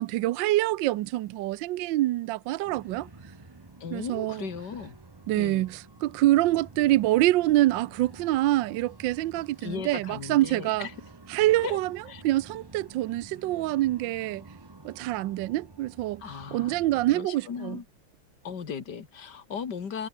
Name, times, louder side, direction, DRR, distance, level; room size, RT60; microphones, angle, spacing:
voice 1, 0.0-3.1 3.9-4.5 5.3-10.9 11.3-14.4 14.8-16.2 16.5-17.8, right 16 dB, 75° right, 1.2 m, -26 dB
sound 1, 2.6-17.2, right 3 dB, 25° right, 0.4 m, -50 dB
voice 2, 3.8-5.0 5.4-5.7 9.6-10.9 11.6-11.8 12.1-12.2 16.2-16.8 17.1-17.8 18.4-20.1, left 6 dB, 50° left, 2.7 m, -37 dB
omnidirectional pair, 2.4 m